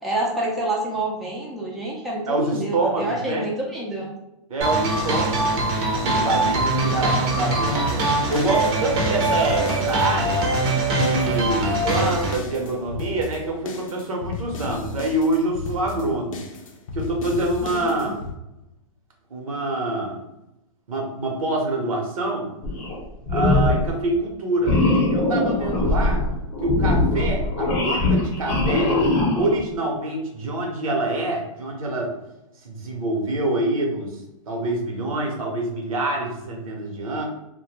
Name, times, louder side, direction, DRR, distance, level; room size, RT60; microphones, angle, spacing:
voice 1, 0.0-4.1 6.8-7.3 17.6-18.1, right 2 dB, ahead, -4 dB, 0.4 m, -28 dB
voice 2, 2.3-3.5 4.5-5.4 6.0-8.0 8.3-10.4 10.9-16.5 16.9-18.1 19.3-20.2 20.9-22.5 23.3-24.7 25.0-26.2 26.6-28.9 29.3-32.1 32.6-34.1 34.5-37.2, right 2 dB, 80° right, 0 dB, 0.8 m, -26 dB
sound 1, 4.6-12.4, right 2 dB, 45° right, 0.6 m, -22 dB
sound 2, 7.7-18.3, left 4 dB, 75° left, 0.5 m, -35 dB
sound 3, 22.6-23.0 23.2-23.9 24.6-29.6, left 2 dB, 35° left, 0.7 m, -21 dB
2.1 x 2.1 x 3.1 m, 0.92 s
hypercardioid pair, 130°, 18 cm